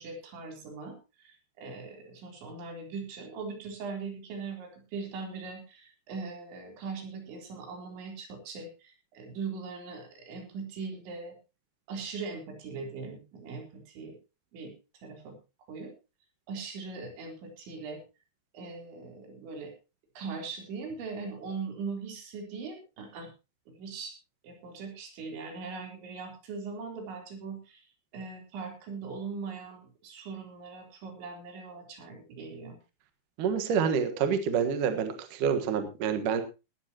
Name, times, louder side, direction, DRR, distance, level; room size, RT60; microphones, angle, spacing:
voice 1, 0.0-11.3 11.9-14.2 14.5-14.7 15.0-15.4 15.7-15.9 16.5-18.0 18.5-19.7 20.2-23.3 23.7-24.1 24.4-27.8 28.1-32.8, right 4 dB, 75° right, 2 dB, 6.0 m, -40 dB
voice 2, 33.4-36.4, right 7 dB, 60° right, 7 dB, 2.4 m, -27 dB
18.5 x 13.0 x 2.9 m, 0.28 s
omnidirectional pair, 5.3 m